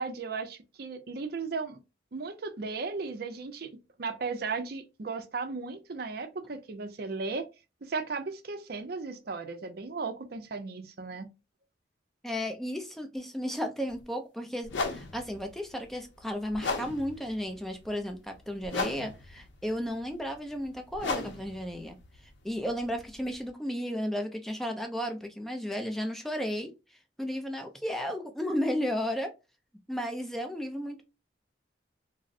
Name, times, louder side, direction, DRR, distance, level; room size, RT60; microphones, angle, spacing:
voice 1, 0.0-1.8 2.1-3.7 4.0-7.5 7.8-11.3, right 4 dB, 55° right, 0.5 m, -36 dB
voice 2, 12.2-22.0 22.4-26.7 27.2-29.3 29.9-31.0, equal, ahead, 0.5 m, -34 dB
sound 1, 13.9-14.0 14.6-23.5, left 3 dB, 75° left, 0.6 m, -37 dB
3.7 x 2.0 x 2.5 m
head